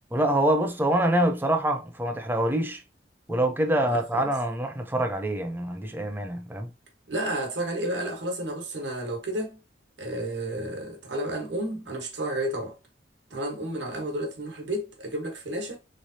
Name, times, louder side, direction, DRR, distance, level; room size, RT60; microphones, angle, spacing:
voice 1, 0.1-2.8 3.3-6.7, right 1 dB, 10° right, 0.5 m, -25 dB
voice 2, 3.8-4.3 7.1-9.6 10.0-12.7 13.3-15.8, right 1 dB, 85° right, 1.2 m, -31 dB
3.5 x 3.2 x 2.6 m
head